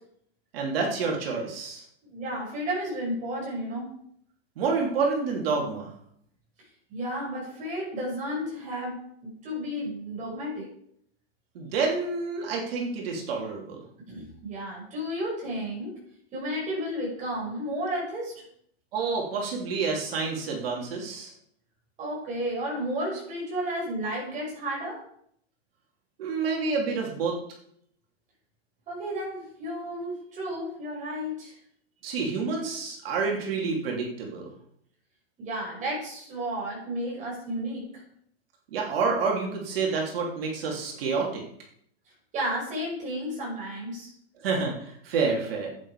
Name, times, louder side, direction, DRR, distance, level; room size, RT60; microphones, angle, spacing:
voice 1, 0.5-1.8 4.6-5.9 11.5-13.8 18.9-21.3 26.2-27.4 32.0-34.5 38.7-41.4 44.4-45.7, right 4 dB, 65° right, -1 dB, 3.1 m, -28 dB
voice 2, 2.0-4.0 6.9-10.7 14.1-15.9 16.3-18.4 22.0-25.0 28.9-31.5 35.4-38.0 42.3-44.1, equal, 25° right, -3 dB, 5.9 m, -32 dB
11.0 x 8.9 x 4.9 m, 0.68 s
supercardioid pair, 160°, 32 cm